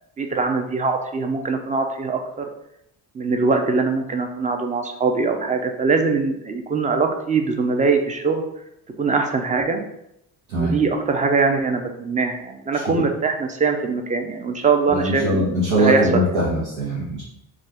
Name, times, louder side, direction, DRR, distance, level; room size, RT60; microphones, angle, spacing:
voice 1, 0.2-2.4 3.1-8.4 9.0-9.8 10.6-16.4, right 4 dB, 20° right, 4 dB, 0.3 m, -22 dB
voice 2, 14.9-17.2, right 1 dB, 90° right, -9 dB, 0.8 m, -21 dB
2.4 x 2.3 x 3.3 m, 0.80 s
hypercardioid pair, 50°, 50 cm